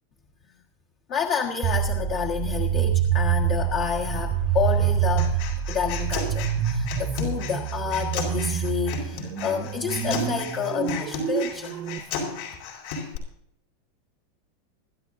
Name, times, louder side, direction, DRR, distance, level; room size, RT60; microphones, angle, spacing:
voice 1, 1.1-5.4 5.7-11.8, left 7 dB, 40° left, 2 dB, 1.5 m, -29 dB
sound 1, 1.6-12.0, right 10 dB, 35° right, 0.9 m, -26 dB
Human voice, 5.2-13.2, left 5 dB, 65° left, 5.1 m, -34 dB
25.0 x 12.5 x 2.7 m, 0.72 s
supercardioid pair, 155°, 0 cm